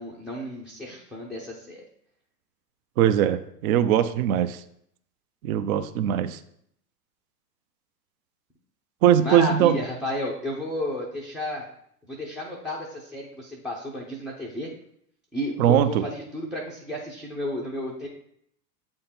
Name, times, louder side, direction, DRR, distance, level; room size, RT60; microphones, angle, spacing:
voice 1, 0.0-1.8 9.2-11.7 12.0-14.7 15.3-18.1, left 1 dB, ahead, -4 dB, 0.4 m, -32 dB
voice 2, 3.0-4.6 5.4-6.4 9.0-9.8 15.6-16.0, right 10 dB, 60° right, 12 dB, 0.6 m, -21 dB
7.8 x 3.8 x 4.2 m, 0.70 s
hypercardioid pair, 115°, 49 cm